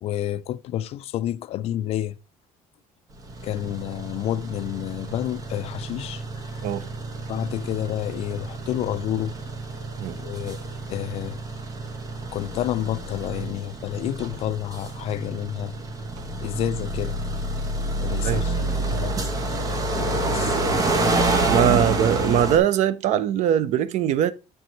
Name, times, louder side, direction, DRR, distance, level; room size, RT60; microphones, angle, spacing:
voice 1, 0.0-2.2 3.4-6.7 7.3-9.3 10.2-10.6 10.9-11.4 12.3-15.7 16.4-17.2 18.0-19.2 19.7-20.6, left 12 dB, 45° left, 0.4 m, -30 dB
sound 1, 3.2-22.6, right 2 dB, 25° right, 1.0 m, -28 dB
voice 2, 21.5-24.3, right 10 dB, 55° right, 0.6 m, -21 dB
7.7 x 4.6 x 3.9 m
cardioid pair, 160°, 14 cm